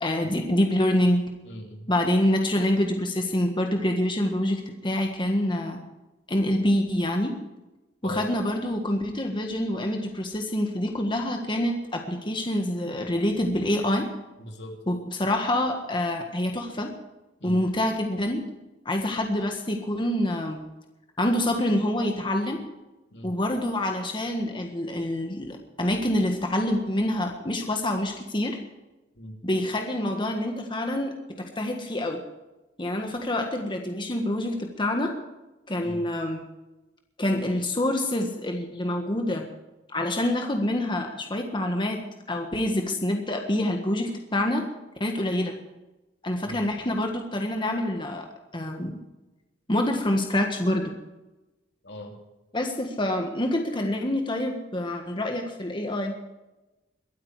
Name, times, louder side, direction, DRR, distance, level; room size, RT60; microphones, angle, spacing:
voice 1, 0.0-1.2 1.9-5.8 6.3-7.4 8.0-14.1 14.9-16.9 17.4-18.5 18.8-20.7 21.2-22.7 23.2-28.6 29.4-32.2 32.8-35.2 35.7-36.4 37.2-39.5 39.9-42.0 42.3-44.7 45.0-45.6 46.2-48.3 48.5-49.0 49.7-50.9 52.5-56.1, left 1 dB, 30° left, 3 dB, 1.5 m, -26 dB
voice 2, 1.4-1.9 8.0-8.3 14.4-14.8 17.4-17.6 23.1-23.4 29.1-29.4 35.8-36.1 46.4-46.6 51.8-52.2, left 1 dB, 70° left, 3 dB, 2.8 m, -40 dB
22.5 x 8.8 x 4.8 m, 1.0 s
head